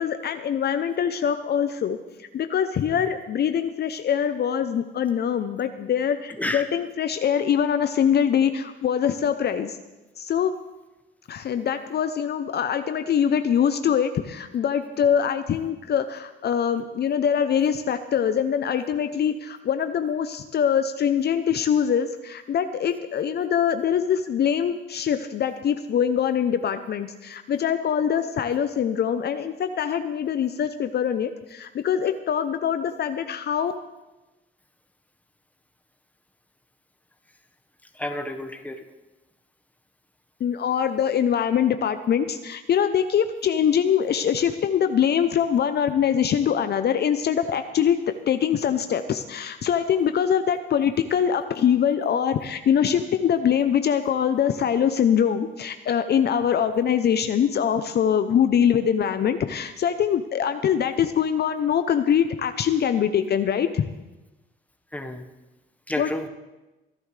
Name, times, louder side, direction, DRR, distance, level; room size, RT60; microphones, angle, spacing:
voice 1, 0.0-9.8 10.2-10.5 11.3-33.7 40.4-48.0 48.3-63.9 66.0-66.1, left 8 dB, 55° left, 9 dB, 0.7 m, -23 dB
voice 2, 6.3-6.6 37.9-38.8 64.9-65.2 65.9-66.3, left 1 dB, 5° left, 4 dB, 1.3 m, -30 dB
23.0 x 11.5 x 3.3 m, 1.1 s
cardioid pair, 90°, 20 cm